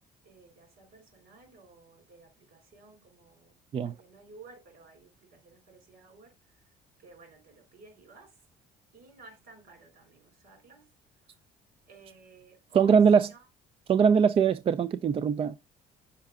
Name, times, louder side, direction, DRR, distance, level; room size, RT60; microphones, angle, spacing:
voice 1, 0.2-3.6 3.8-6.6 7.0-8.3 8.9-10.9 11.9-13.4, right 3 dB, 70° right, 4.4 m, -54 dB
voice 2, 12.8-13.3 13.9-15.6, right 6 dB, 35° right, 0.4 m, -22 dB
5.7 x 4.8 x 3.5 m
cardioid pair, 110°, 17 cm